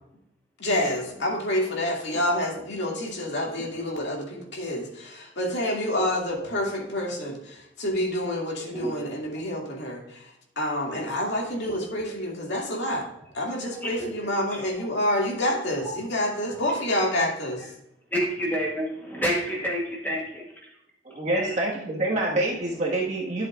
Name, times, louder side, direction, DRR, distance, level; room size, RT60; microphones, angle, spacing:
voice 1, 0.6-10.3 10.6-13.1 13.3-17.7, left 1 dB, 65° left, -1 dB, 2.4 m, -28 dB
voice 2, 14.5-14.9 15.8-15.9 18.1-20.7 21.3-21.6, equal, 10° left, -2 dB, 1.1 m, -30 dB
voice 3, 21.0-23.5, right 2 dB, 40° right, -3 dB, 1.6 m, -26 dB
12.0 x 7.5 x 2.5 m, 0.81 s
head